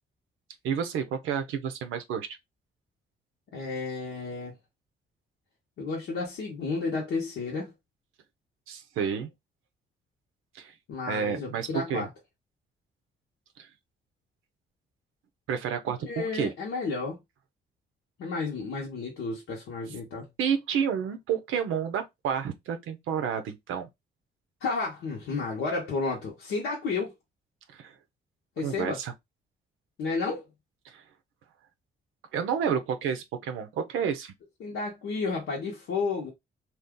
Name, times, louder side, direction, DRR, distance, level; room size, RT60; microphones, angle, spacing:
voice 1, 0.6-2.3 8.7-9.3 10.5-10.7 11.1-12.1 13.6-13.7 15.5-16.5 20.4-23.9 27.7-28.0 28.6-29.1 30.8-31.0 32.3-34.3, right 7 dB, 85° right, 0.6 m, -30 dB
voice 2, 3.5-4.5 5.8-7.7 10.9-12.1 16.0-17.2 18.2-20.3 24.6-27.1 28.6-29.0 30.0-30.4 34.6-36.3, left 4 dB, 80° left, 0.9 m, -32 dB
2.7 x 2.3 x 3.6 m
supercardioid pair, 60°, 20 cm